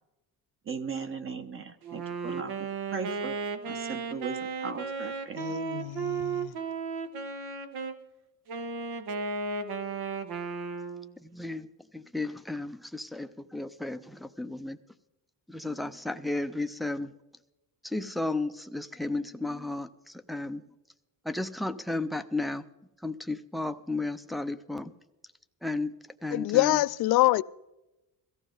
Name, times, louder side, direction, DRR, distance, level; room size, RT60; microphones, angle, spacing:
voice 1, 0.7-3.3 3.7-5.4, right 5 dB, 35° right, 1.0 m, -37 dB
Wind instrument woodwind instrument, 1.8-8.0 8.5-11.1, right 5 dB, 80° right, 1.4 m, -35 dB
voice 2, 5.3-6.5 26.3-27.4, left 18 dB, 70° left, 0.5 m, -25 dB
voice 3, 11.2-11.7 11.9-14.8 15.5-17.1 17.8-20.6 21.3-22.6 23.0-24.9 25.6-25.9 26.2-26.8, left 2 dB, ahead, 0.5 m, -33 dB
17.5 x 14.5 x 3.9 m
cardioid pair, 140°, 39 cm